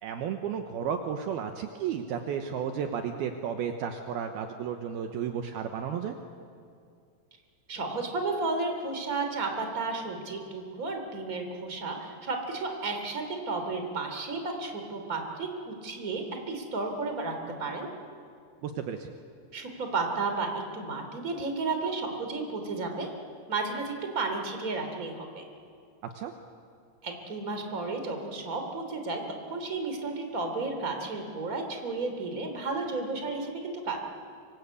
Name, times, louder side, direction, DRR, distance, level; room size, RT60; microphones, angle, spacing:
voice 1, 0.0-6.2 18.6-19.1 26.1-26.3, right 8 dB, 75° right, 6 dB, 2.8 m, -33 dB
voice 2, 7.7-17.3 17.6-17.9 19.5-20.5 20.7-23.1 23.5-25.4 27.0-29.2 29.5-34.0, right 3 dB, 20° right, 4 dB, 3.2 m, -33 dB
25.5 x 25.5 x 8.5 m, 2.3 s
omnidirectional pair, 4.9 m